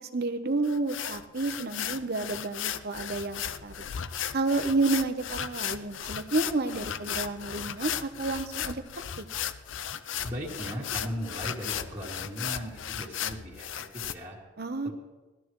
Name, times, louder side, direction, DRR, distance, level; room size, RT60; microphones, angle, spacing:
voice 1, 0.1-3.7 4.3-8.8 14.6-14.9, right 3 dB, 50° right, 9 dB, 0.9 m, -30 dB
sound 1, 0.6-14.1, left 9 dB, 70° left, 0.5 m, -35 dB
voice 2, 10.2-14.4 14.8-14.9, equal, 20° right, -9 dB, 2.1 m, -37 dB
19.0 x 13.0 x 3.1 m, 1.2 s
head